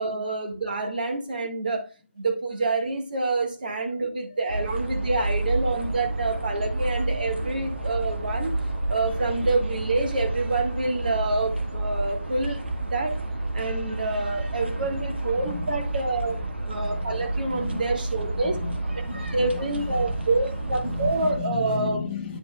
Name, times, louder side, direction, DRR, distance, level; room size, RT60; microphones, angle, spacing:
voice 1, 0.0-1.8 2.2-8.6 8.9-12.6 12.9-13.2 13.5-16.4 16.6-18.6 19.3-22.0, right 3 dB, 50° right, 1.5 m, -27 dB
sound 1, 4.5-21.4, right 2 dB, 70° right, 1.6 m, -30 dB
voice 2, 15.3-15.8 16.3-16.4 16.8-17.9 18.2-22.4, left 4 dB, 20° left, 0.9 m, -37 dB
9.8 x 5.3 x 2.3 m
figure-of-eight pair, 155°, 6 cm